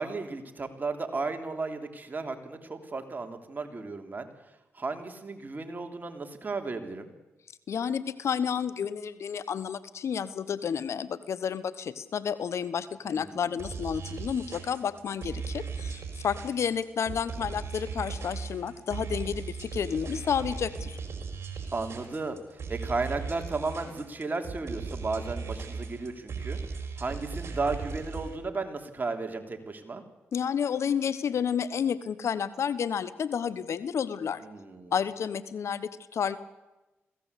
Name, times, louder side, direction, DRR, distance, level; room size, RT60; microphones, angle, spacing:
voice 1, 0.0-4.3 4.7-7.1 13.0-13.5 21.7-30.0 34.4-34.9, right 3 dB, 35° right, 5 dB, 3.3 m, -34 dB
voice 2, 7.7-21.0 30.3-34.4 34.9-36.4, left 7 dB, 65° left, 15 dB, 1.2 m, -31 dB
sound 1, 13.6-28.4, right 5 dB, 55° right, 4.5 m, -38 dB
22.0 x 16.5 x 8.4 m, 1.1 s
supercardioid pair, 50°, 5 cm